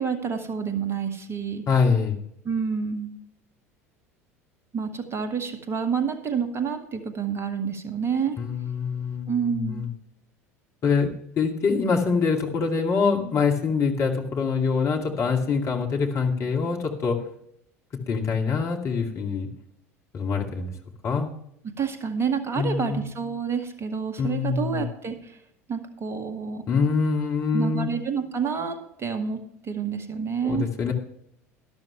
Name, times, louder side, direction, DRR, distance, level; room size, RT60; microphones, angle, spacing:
voice 1, 0.0-1.6 2.4-3.1 4.7-8.4 9.3-9.9 21.8-25.3 25.7-26.6 27.5-30.7, right 6 dB, 30° right, 6 dB, 2.1 m, -28 dB
voice 2, 1.7-2.2 8.4-9.9 10.8-17.2 17.9-19.5 20.1-20.7 21.0-21.3 22.6-23.0 24.2-24.9 26.7-27.9 30.4-30.9, left 5 dB, 40° left, 2 dB, 2.5 m, -24 dB
12.5 x 12.0 x 3.3 m, 0.71 s
figure-of-eight pair, 70°, 8 cm